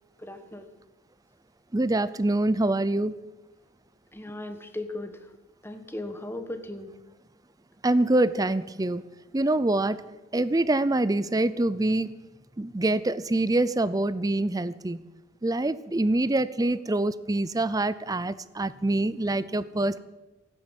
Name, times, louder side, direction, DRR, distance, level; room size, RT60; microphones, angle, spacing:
voice 1, 0.2-0.7 4.1-5.2 5.6-6.9, left 1 dB, 10° left, 7 dB, 1.3 m, -37 dB
voice 2, 1.7-3.1 7.8-9.0 9.3-10.0 10.3-12.1 12.6-15.1 15.4-20.0, right 2 dB, 20° right, 16 dB, 0.5 m, -25 dB
17.5 x 10.0 x 7.2 m, 1.1 s
head